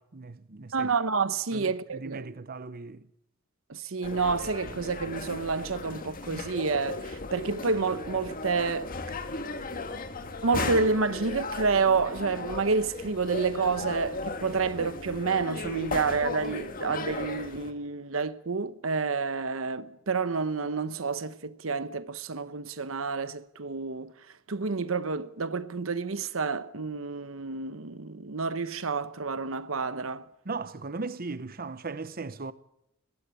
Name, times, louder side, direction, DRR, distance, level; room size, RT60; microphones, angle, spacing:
voice 1, 0.0-0.9 1.5-3.0 30.4-32.5, right 3 dB, 45° right, 0.9 m, -38 dB
voice 2, 0.7-2.3 3.7-8.9 10.4-24.1 24.5-30.3, right 4 dB, 90° right, 1.0 m, -29 dB
sound 1, 4.0-17.7, left 3 dB, 45° left, 1.8 m, -36 dB
21.0 x 15.5 x 10.0 m
head